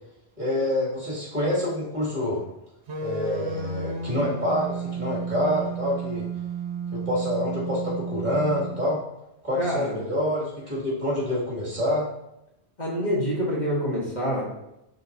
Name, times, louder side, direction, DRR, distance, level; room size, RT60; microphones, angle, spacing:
voice 1, 0.4-2.4 3.0-6.3 6.9-9.0 9.4-12.0, left 1 dB, 45° right, -6 dB, 2.5 m, -27 dB
sound 1, 2.9-8.9, right 4 dB, 80° right, 1.4 m, -32 dB
voice 2, 9.6-10.0 12.8-14.5, equal, 40° left, -4 dB, 1.4 m, -26 dB
10.5 x 3.8 x 2.7 m, 0.86 s
omnidirectional pair, 1.1 m